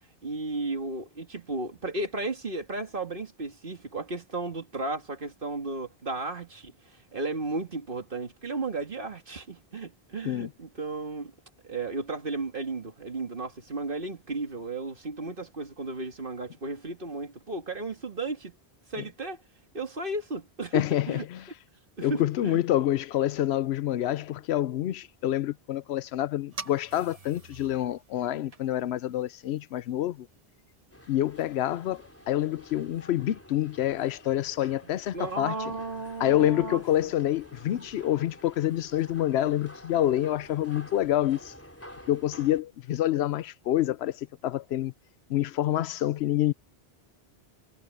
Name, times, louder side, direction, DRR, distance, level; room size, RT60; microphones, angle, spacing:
voice 1, 0.2-11.3 11.6-18.6 18.9-19.4 19.7-21.3 22.0-22.6 35.1-37.1, right 3 dB, 55° right, 2.3 m, -34 dB
voice 2, 20.7-21.5 22.0-30.3 31.1-35.6 36.2-41.5 42.1-44.9 45.3-46.5, left 13 dB, 80° left, 0.8 m, -27 dB
sound 1, 26.5-32.2, right 3 dB, 35° right, 1.2 m, -48 dB
sound 2, 30.9-42.6, left 1 dB, 15° left, 3.8 m, -50 dB
omnidirectional pair, 1.1 m